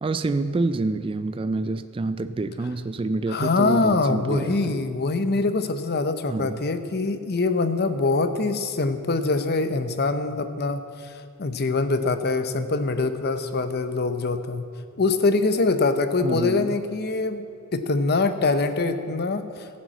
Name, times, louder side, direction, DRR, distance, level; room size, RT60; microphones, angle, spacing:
voice 1, 0.0-4.8 6.3-6.6 16.2-16.8, right 3 dB, 25° right, 11 dB, 0.3 m, -27 dB
voice 2, 3.3-14.6 15.0-19.7, left 3 dB, 45° left, 10 dB, 0.7 m, -24 dB
14.0 x 7.5 x 7.8 m, 2.4 s
head